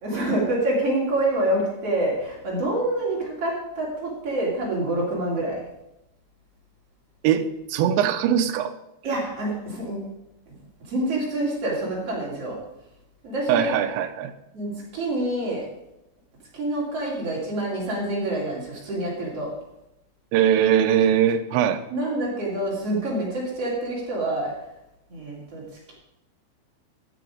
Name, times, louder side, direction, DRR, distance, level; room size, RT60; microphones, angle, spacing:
voice 1, 0.0-5.6 9.0-10.0 10.9-12.6 13.2-13.8 14.5-15.6 16.5-19.5 21.9-24.6 25.1-25.6, right 1 dB, 35° right, -4 dB, 3.6 m, -26 dB
voice 2, 7.2-8.7 13.5-14.3 20.3-21.8, right 9 dB, 80° right, 9 dB, 2.8 m, -21 dB
14.0 x 7.6 x 5.0 m, 0.87 s
omnidirectional pair, 5.6 m